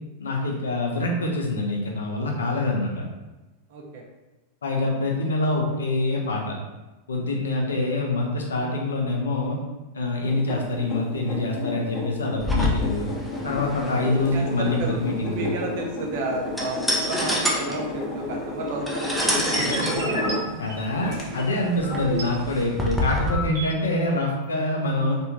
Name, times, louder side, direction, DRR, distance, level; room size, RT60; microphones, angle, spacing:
voice 1, 0.2-3.0 4.6-6.6 7.1-9.6 9.9-13.1 13.4-15.5 20.6-25.2, left 2 dB, 70° left, 0 dB, 0.6 m, -25 dB
voice 2, 3.7-4.0 14.3-20.3, right 2 dB, 50° right, 1 dB, 0.6 m, -32 dB
sound 1, 10.2-20.7 21.1-21.2, left 2 dB, 30° left, 0.8 m, -33 dB
sound 2, 12.4-23.3, left 1 dB, ahead, 0.5 m, -29 dB
sound 3, 19.2-22.2 22.7-23.7, equal, 65° right, 1.0 m, -31 dB
3.3 x 2.6 x 3.0 m, 1.1 s
figure-of-eight pair, 90°, 0 cm